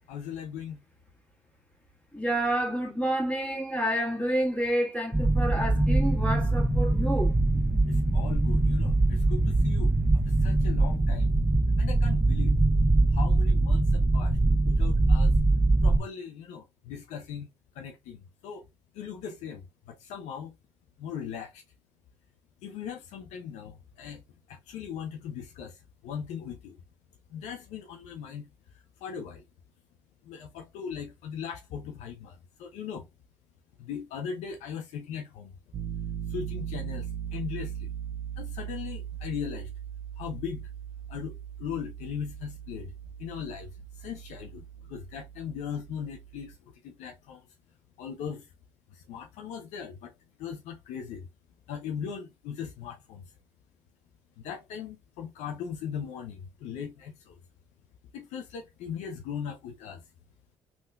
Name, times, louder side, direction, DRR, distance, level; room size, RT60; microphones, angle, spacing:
voice 1, 0.1-0.8 7.9-9.9 10.3-11.3 11.8-12.6 13.1-14.4 14.7-15.3 15.8-17.5 17.8-18.6 18.9-20.5 21.0-21.6 22.6-24.2 24.5-25.8 26.0-26.8 27.3-28.5 29.0-29.4 30.2-33.1 33.8-35.5 36.3-37.9 38.4-39.7 40.2-40.7 41.1-42.9 43.2-43.7 44.0-47.4 48.0-48.5 48.9-50.1 50.4-51.3 51.7-53.2 54.4-57.4 58.1-60.0, left 7 dB, 65° left, 0.5 m, -39 dB
voice 2, 2.1-7.3, right 1 dB, 10° left, 1.5 m, -29 dB
sound 1, 5.1-16.0, right 2 dB, 10° right, 1.1 m, -23 dB
Piano, 35.7-46.6, right 9 dB, 40° right, 0.4 m, -39 dB
3.5 x 2.4 x 2.3 m
figure-of-eight pair, 50°, 13 cm